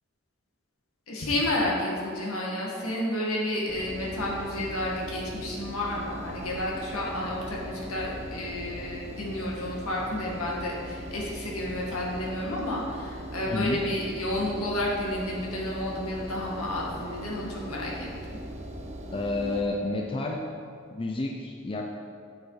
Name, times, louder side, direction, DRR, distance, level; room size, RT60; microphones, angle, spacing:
voice 1, 1.1-18.1, left 1 dB, 80° left, -4 dB, 2.0 m, -31 dB
Engine, 3.7-19.6, right 1 dB, 30° right, 0.9 m, -40 dB
voice 2, 13.5-13.8 19.1-20.4 20.9-21.8, left 2 dB, 25° left, 0 dB, 0.5 m, -30 dB
8.1 x 6.6 x 4.9 m, 2.4 s
head